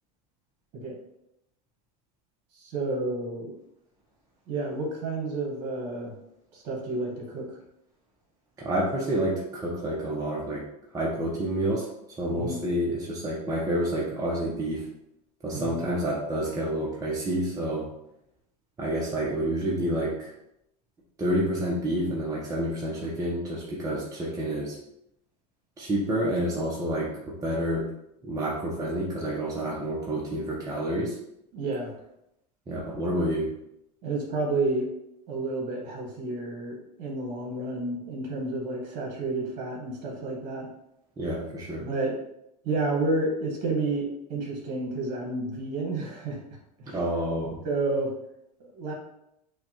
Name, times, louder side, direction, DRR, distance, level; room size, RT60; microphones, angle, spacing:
voice 1, 2.5-3.5 4.5-6.2 6.5-7.6 12.3-12.6 15.5-15.8 31.5-31.9 34.0-34.9 35.3-40.7 41.8-42.1 42.6-46.4 46.8-47.0 47.6-48.1 48.6-48.9, right 2 dB, 55° right, -1 dB, 1.2 m, -30 dB
voice 2, 8.6-10.6 10.9-11.9 12.2-14.9 15.4-17.9 18.8-20.3 21.2-24.8 25.8-27.9 28.2-31.2 32.7-33.5 41.2-41.9 46.9-47.6, right 1 dB, 15° right, -5 dB, 0.7 m, -29 dB
5.2 x 2.2 x 2.9 m, 0.82 s
supercardioid pair, 115°, 21 cm